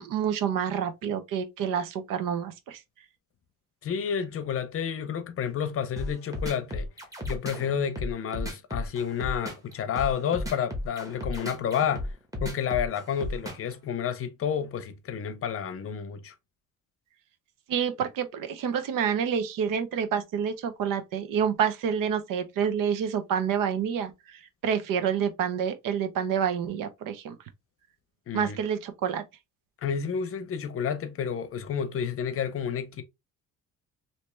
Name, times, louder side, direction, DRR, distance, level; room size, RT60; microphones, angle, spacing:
voice 1, 0.0-2.8 17.7-24.1 24.6-27.4 28.3-29.2, right 8 dB, 80° right, 0.8 m, -28 dB
voice 2, 3.8-6.9 7.3-12.1 12.4-16.3 28.3-28.6 29.8-33.0, left 8 dB, 45° left, 0.6 m, -30 dB
sound 1, 6.0-13.7, left 1 dB, 10° right, 1.0 m, -34 dB
3.2 x 2.8 x 3.1 m
cardioid pair, 140°, 32 cm